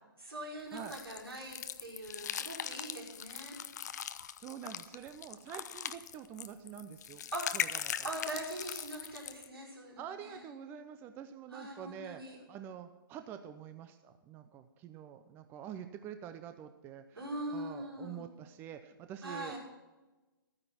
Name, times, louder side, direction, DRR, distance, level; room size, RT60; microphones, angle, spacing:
voice 1, 0.2-3.6 7.3-7.6 8.0-10.5 11.5-12.4 17.2-18.2 19.2-19.6, right 1 dB, 85° right, -4 dB, 5.6 m, -42 dB
sound 1, 0.8-9.5, left 9 dB, 45° left, 0.6 m, -40 dB
voice 2, 4.4-7.2 7.5-8.1 10.0-12.2 12.5-19.6, right 9 dB, 15° right, 9 dB, 0.6 m, -46 dB
13.5 x 9.6 x 5.8 m, 1.1 s
figure-of-eight pair, 130°, 12 cm